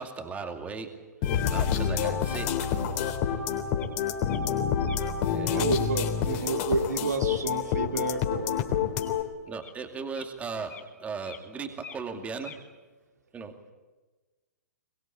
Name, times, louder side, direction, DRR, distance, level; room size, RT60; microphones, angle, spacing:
voice 1, 0.0-2.5 5.2-5.6 9.5-12.7 13.3-13.6, right 5 dB, 15° right, 5 dB, 2.4 m, -37 dB
sound 1, 1.2-9.2, left 8 dB, 40° left, 3.5 m, -27 dB
sound 2, 3.8-3.9 4.2-4.4 4.8-5.0 9.0-9.1 9.6-9.7 10.1-10.3 10.7-10.9 11.2-11.4 11.7-12.1 12.4-12.6, left 8 dB, 20° left, 3.3 m, -46 dB
voice 2, 5.5-8.7, right 4 dB, 80° right, 3 dB, 3.4 m, -30 dB
23.0 x 22.5 x 8.8 m, 1.2 s
hypercardioid pair, 120°, 9 cm